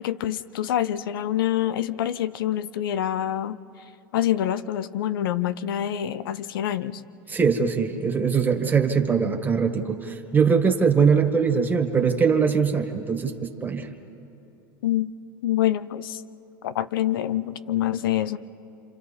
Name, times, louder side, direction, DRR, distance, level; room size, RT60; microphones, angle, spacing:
voice 1, 0.0-3.6 4.1-7.0 14.8-15.1 15.4-16.2 16.6-18.4, left 11 dB, 85° left, 15 dB, 0.6 m, -26 dB
voice 2, 7.3-13.9, right 6 dB, 15° right, 4 dB, 1.9 m, -22 dB
27.5 x 27.0 x 4.3 m, 3.0 s
supercardioid pair, 110°, 11 cm